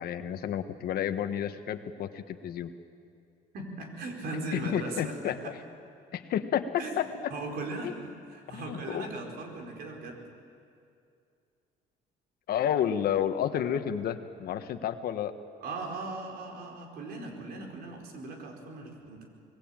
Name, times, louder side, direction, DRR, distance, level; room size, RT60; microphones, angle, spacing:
voice 1, 0.0-2.7 4.5-5.4 6.1-7.0 7.8-7.9 8.5-9.1 12.5-15.3, left 9 dB, 65° left, 9 dB, 1.4 m, -30 dB
voice 2, 3.5-5.6 6.8-7.0 7.3-10.2 15.6-19.3, right 2 dB, 70° right, 2 dB, 4.7 m, -39 dB
24.5 x 20.5 x 9.0 m, 2.4 s
cardioid pair, 110°, 17 cm